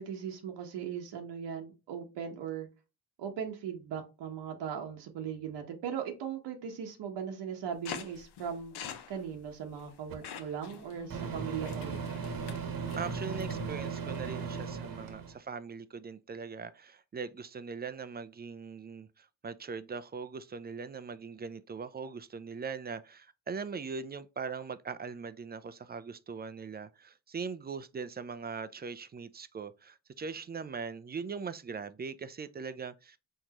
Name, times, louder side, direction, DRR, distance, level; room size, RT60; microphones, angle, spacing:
voice 1, 0.0-2.7 3.2-8.7 9.1-12.0, right 8 dB, 85° right, 1.1 m, -38 dB
sound 1, 7.9-13.7, left 8 dB, 70° left, 0.9 m, -46 dB
Microwave oven, 10.1-10.2 11.1-15.4, right 6 dB, 55° right, 1.1 m, -37 dB
voice 2, 13.0-33.2, right 5 dB, 25° right, 0.4 m, -41 dB
4.5 x 3.7 x 2.9 m
cardioid pair, 100°, 41 cm